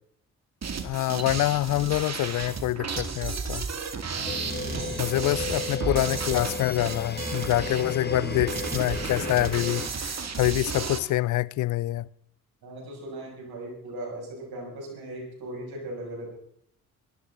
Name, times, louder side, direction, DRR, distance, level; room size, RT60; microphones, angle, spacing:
sound 1, 0.6-11.0, right 5 dB, 40° right, 2.1 m, -33 dB
voice 1, 0.8-3.6 5.0-12.1, left 16 dB, 45° left, 0.5 m, -26 dB
voice 2, 4.1-5.1 6.8-6.9 12.6-16.3, right 1 dB, 60° right, 6.6 m, -39 dB
sound 2, 4.3-9.9, left 3 dB, 25° left, 1.3 m, -34 dB
22.5 x 13.5 x 3.8 m
figure-of-eight pair, 40°, 42 cm